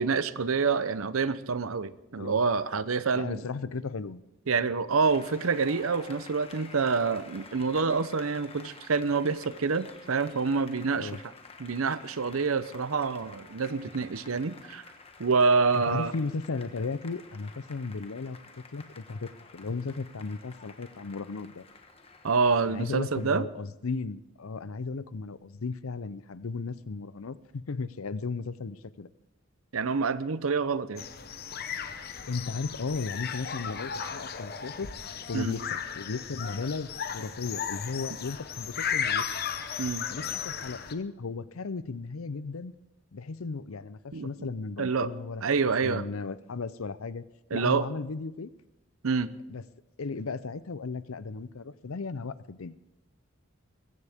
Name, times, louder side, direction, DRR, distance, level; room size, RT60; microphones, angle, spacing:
voice 1, 0.0-3.4 4.5-11.3 11.6-14.8 15.2-16.1 22.2-23.5 29.7-31.1 35.3-35.5 39.8-40.1 44.1-44.3 44.8-45.1 45.4-46.0 47.5-47.9 49.0-49.3, right 4 dB, 85° right, 15 dB, 0.7 m, -27 dB
voice 2, 3.1-4.2 11.0-11.2 15.7-21.6 22.7-29.1 32.3-34.9 35.3-35.7 36.0-39.2 40.1-42.7 43.1-47.2 47.5-48.5 49.5-49.6 50.0-52.7, left 4 dB, 90° left, 16 dB, 0.6 m, -35 dB
Applause, 5.0-23.3, left 4 dB, 30° left, 1.3 m, -51 dB
sound 1, 31.0-40.9, left 7 dB, 45° left, 0.9 m, -35 dB
22.0 x 15.0 x 3.6 m, 0.96 s
head